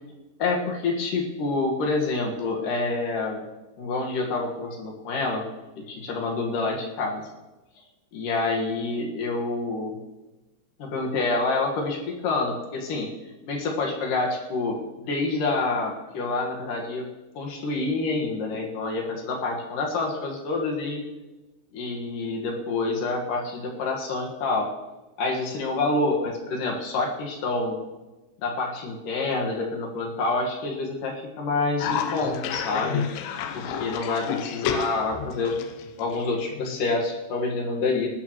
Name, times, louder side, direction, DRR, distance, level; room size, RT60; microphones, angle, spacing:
voice 1, 0.4-3.4 3.8-5.4 5.8-7.2 8.1-10.0 10.8-13.1 13.5-17.1 17.3-21.0 21.7-24.7 25.2-27.8 28.4-33.0 33.5-35.6 36.0-38.1, left 3 dB, 60° left, 0 dB, 2.5 m, -27 dB
Cough, 31.8-36.9, left 7 dB, 80° left, 2.8 m, -31 dB
19.5 x 13.0 x 3.1 m, 1.1 s
omnidirectional pair, 5.7 m